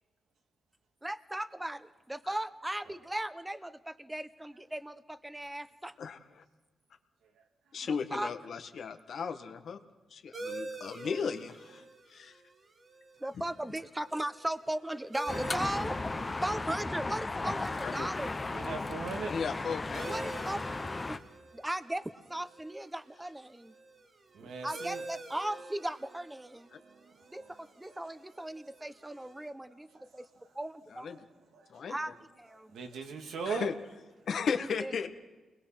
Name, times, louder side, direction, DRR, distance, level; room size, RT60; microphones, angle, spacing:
voice 1, 1.0-5.9 7.8-8.3 13.2-16.0 16.4-18.4 20.1-21.2 21.5-23.7 24.4-26.7 27.3-29.9 30.1-30.3 30.5-31.1 31.9-32.1 32.4-32.8 34.8-35.1, right 1 dB, 10° right, 13 dB, 1.1 m, -37 dB
voice 2, 7.7-9.8 10.1-11.8 12.1-12.4 17.7-18.1 19.2-20.2 30.9-31.2 31.7-32.0 33.5-33.7 34.3-35.1, left 6 dB, 65° left, 7 dB, 1.8 m, -35 dB
sound 1, 10.3-29.5, right 3 dB, 40° right, 2.1 m, -48 dB
sound 2, 15.3-21.2, left 3 dB, 25° left, 1.3 m, -35 dB
voice 3, 18.5-19.3 24.3-25.0 26.7-27.6 27.8-28.0 30.0-30.2 31.1-31.3 31.5-31.9 32.7-33.7, right 4 dB, 85° right, 3 dB, 2.6 m, -40 dB
29.0 x 21.5 x 6.1 m, 1.2 s
cardioid pair, 80°, 0 cm